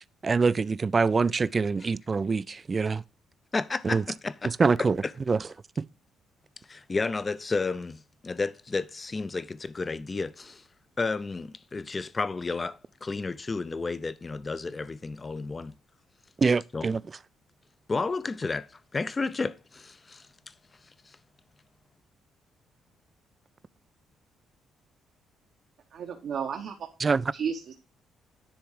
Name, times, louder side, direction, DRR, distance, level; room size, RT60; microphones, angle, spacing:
voice 1, 0.2-3.0 3.8-4.0 4.5-5.0 5.3-5.4 5.8-5.9 16.4-17.0 27.0-27.3, right 4 dB, 35° right, 0.3 m, -24 dB
voice 2, 3.5-4.9 6.7-10.6 11.0-15.7 16.7-16.9 17.9-18.7 18.9-20.3, left 3 dB, 30° left, 0.5 m, -32 dB
voice 3, 25.9-26.7 27.3-27.8, right 7 dB, 65° right, 1.0 m, -32 dB
10.0 x 3.5 x 4.9 m
cardioid pair, 90°, 0 cm